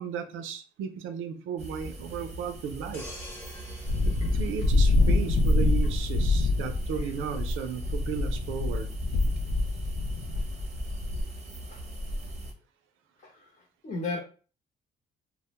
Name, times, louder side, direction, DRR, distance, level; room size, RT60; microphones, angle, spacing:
voice 1, 0.0-3.1 3.6-3.8 4.3-8.9, right 7 dB, 85° right, 7 dB, 0.4 m, -35 dB
sound 1, 1.6-12.5, right 1 dB, 35° right, 0.6 m, -42 dB
sound 2, 2.9-5.6 6.1-6.3, left 1 dB, 10° left, 0.9 m, -46 dB
sound 3, 3.8-11.2, left 2 dB, 70° left, 0.4 m, -26 dB
voice 2, 13.2-14.2, left 3 dB, 40° left, -3 dB, 0.8 m, -36 dB
2.1 x 2.1 x 2.8 m, 0.37 s
cardioid pair, 90°, 20 cm